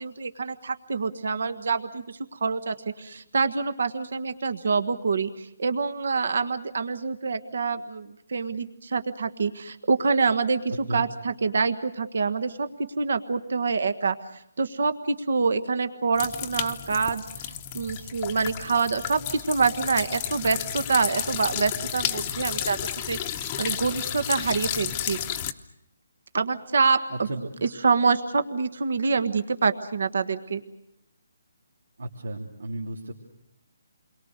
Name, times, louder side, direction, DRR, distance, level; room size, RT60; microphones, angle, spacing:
voice 1, 0.0-10.6 10.9-22.8 23.1-25.2 26.3-27.3 27.6-30.6, right 4 dB, 60° right, 10 dB, 1.4 m, -26 dB
sound 1, 16.1-25.5, left 10 dB, 20° left, 0.9 m, -32 dB
voice 2, 27.1-27.5 32.0-33.1, right 1 dB, 80° right, -1 dB, 3.3 m, -33 dB
29.5 x 22.5 x 6.6 m, 0.78 s
hypercardioid pair, 175°, 0 cm